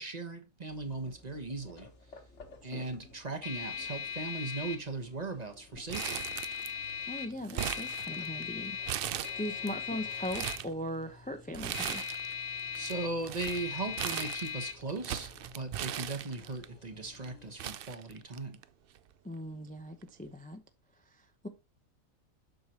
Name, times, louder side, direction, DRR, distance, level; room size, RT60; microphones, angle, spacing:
voice 1, 0.0-1.9 2.6-6.2 12.7-18.6, right 3 dB, 30° right, 1.2 m, -38 dB
sound 1, 0.7-17.5, left 6 dB, 60° left, 1.6 m, -41 dB
Crumpling crinkling, 5.9-6.9 7.2-8.4 8.9-9.7 10.1-10.7 11.5-12.3 12.6-16.7 17.2-17.3 17.6-18.6 19.0-19.1 20.0-20.3, right 10 dB, 65° right, 0.6 m, -38 dB
voice 2, 7.1-12.0 19.2-20.6 21.1-21.5, left 1 dB, 10° left, 0.6 m, -40 dB
7.8 x 6.5 x 2.9 m
omnidirectional pair, 1.4 m